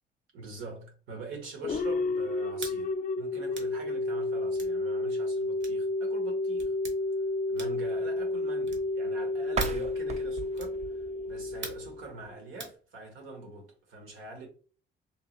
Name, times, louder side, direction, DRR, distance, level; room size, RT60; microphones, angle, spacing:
voice 1, 0.3-6.8 7.5-14.5, right 3 dB, 85° right, 1.3 m, -44 dB
sound 1, 1.6-12.3, left 2 dB, 45° left, 0.4 m, -31 dB
sound 2, 2.6-2.8 3.5-3.7 4.5-4.8 5.6-5.8 6.6-7.0 7.5-7.9 8.6-8.9 9.6-9.9 10.5-10.8 11.6-11.9 12.6-12.8, right 3 dB, 65° right, 1.0 m, -42 dB
sound 3, 9.5-12.3, right 4 dB, 35° right, 0.4 m, -37 dB
3.6 x 2.4 x 3.0 m
cardioid pair, 90°, 20 cm